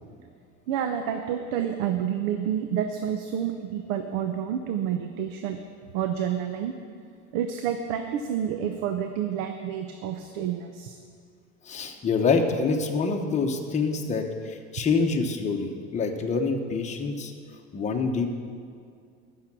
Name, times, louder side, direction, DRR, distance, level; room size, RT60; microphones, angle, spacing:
voice 1, 0.7-5.6 5.9-6.7 7.3-11.0, right 9 dB, 75° right, 6 dB, 0.8 m, -29 dB
voice 2, 11.6-17.3 17.7-18.3, left 4 dB, 20° left, 3 dB, 1.0 m, -26 dB
14.5 x 6.6 x 6.1 m, 2.3 s
cardioid pair, 150°, 32 cm